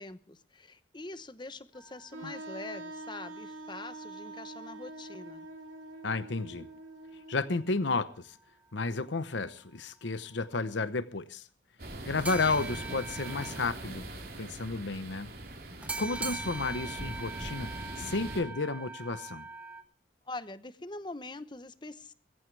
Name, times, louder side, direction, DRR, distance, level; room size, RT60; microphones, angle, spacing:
voice 1, 0.0-5.5 20.3-22.1, left 2 dB, 25° left, 0.9 m, -44 dB
sound 1, 1.7-5.1 5.3-5.4 12.2-13.6 15.8-19.8, right 3 dB, 5° right, 1.5 m, -42 dB
Wind instrument woodwind instrument, 2.1-7.9, right 2 dB, 85° right, 3.1 m, -45 dB
voice 2, 6.0-6.7 7.3-8.4 8.7-11.5 12.1-14.1 14.4-15.3 16.0-17.7 18.0-19.5, left 3 dB, 75° left, 0.9 m, -32 dB
sound 2, 11.8-18.4, right 1 dB, 50° right, 3.9 m, -42 dB
21.0 x 15.5 x 3.3 m
head